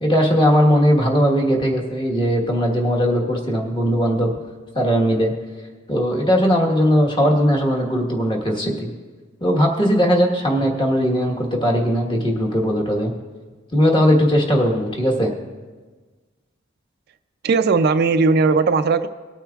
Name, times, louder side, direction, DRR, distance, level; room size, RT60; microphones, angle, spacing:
voice 1, 0.0-4.3 4.7-5.3 5.9-8.9 9.4-13.1 13.7-15.3, equal, 25° left, 0 dB, 1.3 m, -18 dB
voice 2, 17.4-19.1, right 4 dB, 55° right, 10 dB, 0.4 m, -17 dB
20.5 x 8.9 x 2.4 m, 1.4 s
head